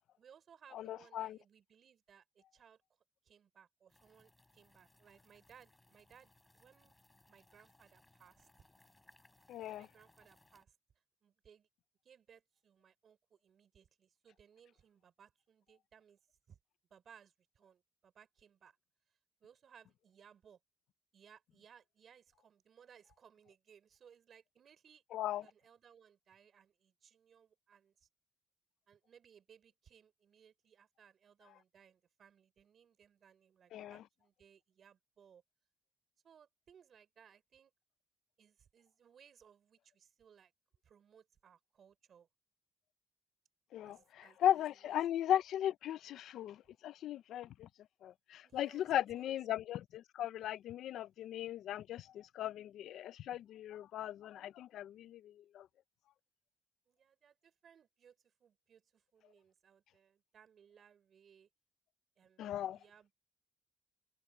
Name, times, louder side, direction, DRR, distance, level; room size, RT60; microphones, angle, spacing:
voice 1, 0.2-2.8 3.2-6.9 7.3-8.5 9.6-10.7 11.2-11.7 12.0-16.2 16.5-16.6 16.9-18.8 19.4-20.6 21.1-25.0 25.4-28.1 28.9-35.4 36.2-37.7 38.4-40.5 40.8-42.3 43.8-45.0 46.7-46.8 48.4-49.4 56.9-61.5 62.2-63.1, right 8 dB, 55° right, 4.3 m, -64 dB
voice 2, 0.7-1.4 9.5-9.9 25.1-25.4 33.7-34.0 43.7-47.7 48.0-55.7 62.4-62.8, left 11 dB, 80° left, 0.6 m, -37 dB
sound 1, 3.9-10.7, left 2 dB, 15° left, 6.1 m, -68 dB
cardioid pair, 90°, 0 cm